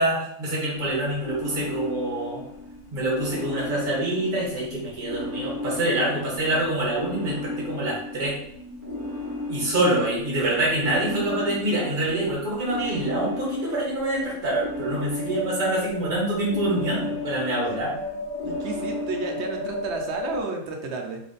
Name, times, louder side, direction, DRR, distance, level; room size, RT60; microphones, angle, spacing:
voice 1, 0.0-2.4 2.9-8.3 9.5-17.9, right 1 dB, 35° right, -4 dB, 1.4 m, -26 dB
sound 1, 0.7-20.4, left 2 dB, 15° right, 0.8 m, -34 dB
voice 2, 17.6-18.2 18.4-21.2, right 3 dB, 60° right, 3 dB, 0.8 m, -32 dB
3.4 x 2.7 x 3.9 m, 0.73 s
omnidirectional pair, 1.6 m